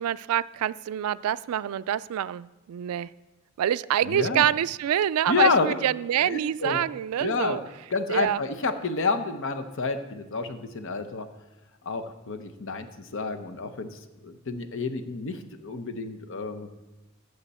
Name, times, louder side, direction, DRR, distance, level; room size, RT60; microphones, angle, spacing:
voice 1, 0.0-3.1 3.6-7.6 8.1-8.4, right 10 dB, 85° right, 17 dB, 0.3 m, -26 dB
voice 2, 4.1-4.5 5.3-5.7 6.2-6.8 7.2-7.6 7.9-11.3 11.8-16.7, left 4 dB, 60° left, 9 dB, 0.8 m, -29 dB
15.0 x 6.7 x 4.2 m, 1.1 s
head